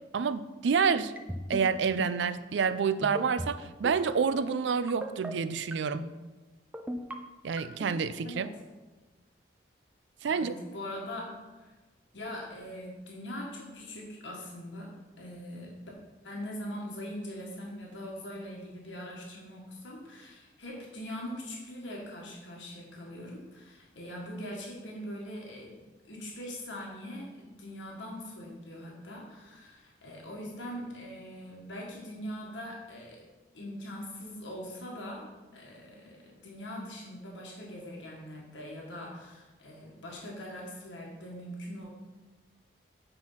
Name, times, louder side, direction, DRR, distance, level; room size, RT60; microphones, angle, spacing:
voice 1, 0.1-1.1 1.5-6.1 7.4-8.5 10.2-10.5, right 6 dB, 75° right, 14 dB, 0.4 m, -28 dB
sound 1, 1.2-1.6 2.0-2.3 3.0-3.5 3.8-4.1 4.9-5.3 5.7-6.1 6.7-7.1 7.6-7.9, equal, 10° right, 0.5 m, -36 dB
voice 2, 10.3-11.7 12.1-15.8 16.2-25.8 26.0-33.2 33.5-35.3 35.5-41.9, equal, 80° left, -2 dB, 1.6 m, -42 dB
7.8 x 4.4 x 5.6 m, 1.2 s
head